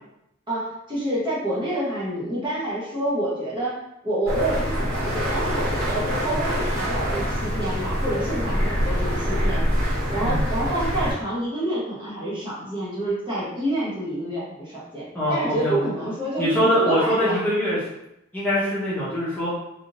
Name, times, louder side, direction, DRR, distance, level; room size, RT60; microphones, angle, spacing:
voice 1, 0.5-3.8 4.0-9.7 10.1-17.4, right 1 dB, 25° right, -7 dB, 0.9 m, -28 dB
sound 1, 4.3-11.1, equal, 75° right, 1.5 m, -25 dB
voice 2, 15.1-15.8 16.4-17.8 18.3-19.5, equal, 10° left, -10 dB, 0.9 m, -23 dB
3.6 x 2.7 x 2.5 m, 0.85 s
head